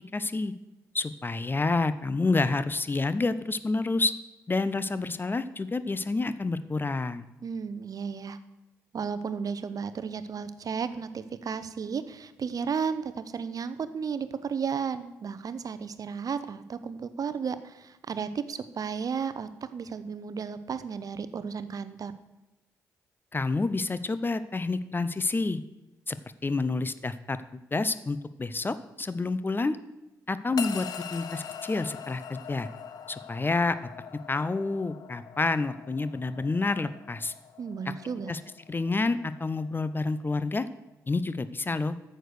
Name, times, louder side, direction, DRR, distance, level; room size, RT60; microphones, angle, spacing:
voice 1, 0.1-0.5 0.9-4.1 4.5-7.3 23.3-25.6 26.1-26.2 26.4-27.4 27.7-29.8 30.3-32.7 33.1-33.8 34.3-37.3 38.3-38.4 38.7-40.7 41.1-42.0, left 3 dB, 30° left, 14 dB, 0.6 m, -28 dB
voice 2, 7.4-8.4 8.9-22.1 37.6-38.3, right 6 dB, 55° right, 13 dB, 0.7 m, -33 dB
sound 1, 30.6-40.9, left 8 dB, 65° left, 0.8 m, -43 dB
9.0 x 6.6 x 6.5 m, 0.99 s
hypercardioid pair, 45°, 8 cm